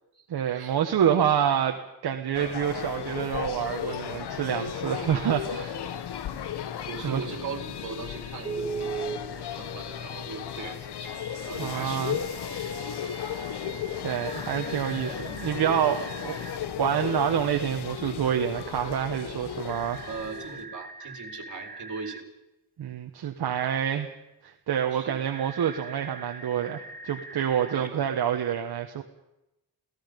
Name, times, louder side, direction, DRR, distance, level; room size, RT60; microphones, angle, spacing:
voice 1, 0.3-5.8 7.0-7.2 11.6-12.2 13.6-20.0 22.8-24.1 24.4-29.0, right 9 dB, 70° right, 4 dB, 1.4 m, -27 dB
sound 1, 2.3-20.7, left 9 dB, 80° left, 1.3 m, -35 dB
voice 2, 6.8-11.1 11.4-12.5 12.8-13.2 20.1-22.2 24.9-25.2 27.7-28.0, right 5 dB, 50° right, 3 dB, 4.1 m, -39 dB
Telephone, 8.4-9.2 11.0-16.6 19.7-22.2 25.3-27.9, right 5 dB, 20° right, 1.0 m, -40 dB
29.0 x 17.0 x 5.3 m, 0.91 s
wide cardioid pair, 140°, 39 cm